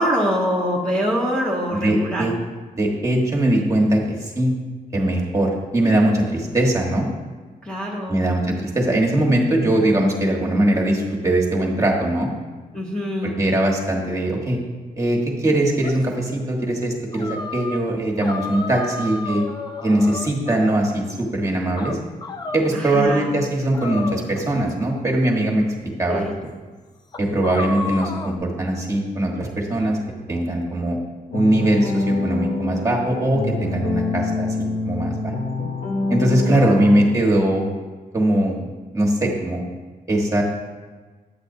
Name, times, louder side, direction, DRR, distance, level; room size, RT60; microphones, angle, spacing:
voice 1, 0.0-2.3 7.6-8.2 12.7-13.4 22.7-23.3 26.1-26.3 36.5-36.9, equal, 10° left, -4 dB, 0.9 m, -24 dB
voice 2, 1.7-2.3 2.8-4.5 4.9-7.1 8.1-12.3 13.2-14.6 15.0-19.4 19.8-22.0 22.5-26.2 27.2-30.0 30.3-31.0 31.3-35.3 36.1-37.7 38.1-38.6 38.9-39.6 40.1-40.4, right 1 dB, 20° right, -2 dB, 1.3 m, -21 dB
sound 1, 15.8-16.1 17.1-17.8 18.2-20.7 21.8-22.7 23.7-24.7 25.6-25.7 26.3-26.4 27.1-28.4, left 3 dB, 30° left, 0.4 m, -32 dB
sound 2, 31.3-37.1, left 3 dB, 70° left, 0.7 m, -26 dB
8.6 x 8.0 x 2.7 m, 1.4 s
wide cardioid pair, 135°, 15 cm